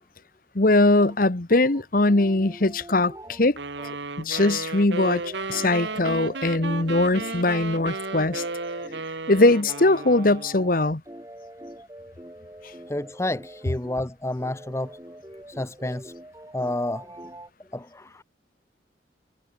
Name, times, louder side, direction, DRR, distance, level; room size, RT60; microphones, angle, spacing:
voice 1, 0.5-3.6 4.2-8.4 9.3-11.0, left 2 dB, 45° left, 1.2 m, -21 dB
sound 1, 0.9-4.6 5.0-14.0 14.3-17.5, right 1 dB, 15° right, 6.0 m, -44 dB
sound 2, 3.6-10.7, right 3 dB, 70° right, 2.0 m, -34 dB
voice 2, 12.9-15.0 15.6-16.1 16.5-17.1 17.7-18.2, left 1 dB, 15° left, 0.6 m, -30 dB
head